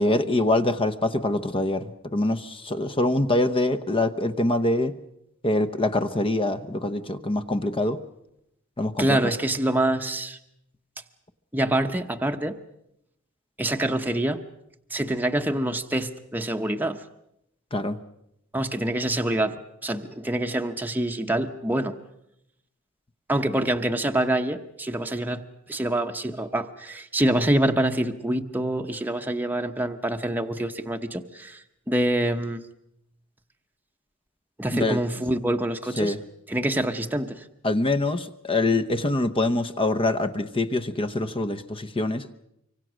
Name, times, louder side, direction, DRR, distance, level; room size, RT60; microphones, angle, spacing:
voice 1, 0.0-4.9 5.4-8.0 8.8-9.3 17.7-18.0 34.7-35.0 36.0-36.2 37.6-42.3, left 2 dB, 25° left, 11 dB, 0.9 m, -24 dB
voice 2, 9.0-10.4 11.5-12.6 13.6-14.4 14.9-17.0 18.5-22.0 23.3-25.4 25.7-31.6 31.9-32.6 34.6-36.1 36.5-37.4, right 1 dB, 10° right, 4 dB, 0.9 m, -26 dB
25.0 x 24.5 x 6.3 m, 0.80 s
head